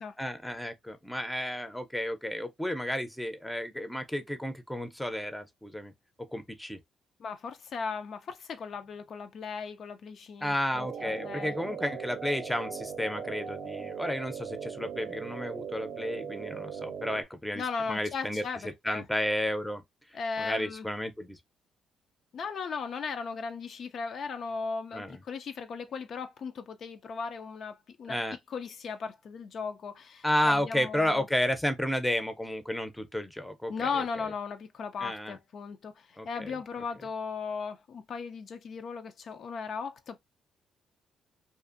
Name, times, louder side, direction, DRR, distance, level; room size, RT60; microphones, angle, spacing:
voice 1, 0.0-5.9 6.2-6.8 10.4-17.6 17.9-18.4 18.8-19.8 20.4-21.4 24.9-25.2 28.1-28.4 30.2-34.0 35.0-35.4 36.2-36.5, left 1 dB, 5° left, 0.5 m, -32 dB
voice 2, 7.2-11.5 17.6-19.1 20.1-20.9 22.3-28.2 28.5-31.3 33.7-40.2, left 5 dB, 60° left, 0.3 m, -37 dB
sound 1, 10.7-17.2, right 6 dB, 75° right, 0.5 m, -39 dB
2.5 x 2.4 x 2.5 m
cardioid pair, 90°, 0 cm